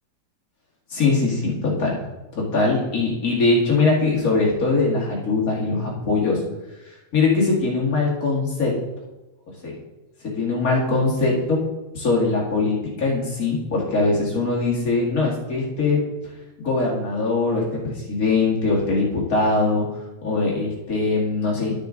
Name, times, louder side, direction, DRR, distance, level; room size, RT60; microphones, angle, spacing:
voice 1, 0.9-2.0 2.3-6.4 7.1-8.7 9.6-9.8 10.2-11.6 11.9-16.0 16.6-19.8 20.2-21.7, left 3 dB, 55° left, -3 dB, 2.6 m, -21 dB
12.0 x 6.2 x 3.8 m, 1.0 s
omnidirectional pair, 1.8 m